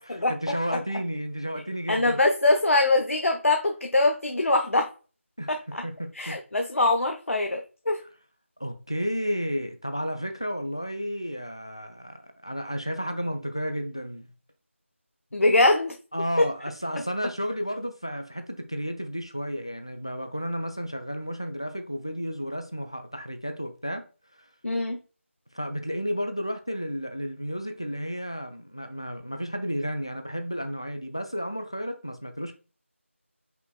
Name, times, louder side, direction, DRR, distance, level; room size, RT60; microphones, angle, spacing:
voice 1, 0.1-2.2 5.4-6.4 8.6-14.3 16.1-24.0 24.4-24.5 25.5-32.6, equal, 25° left, 0.4 m, -32 dB
voice 2, 1.9-4.9 5.5-5.8 6.2-8.0 15.3-15.9 24.6-25.0, left 2 dB, 75° left, 0.7 m, -23 dB
5.5 x 4.0 x 2.2 m
figure-of-eight pair, 180°, 7 cm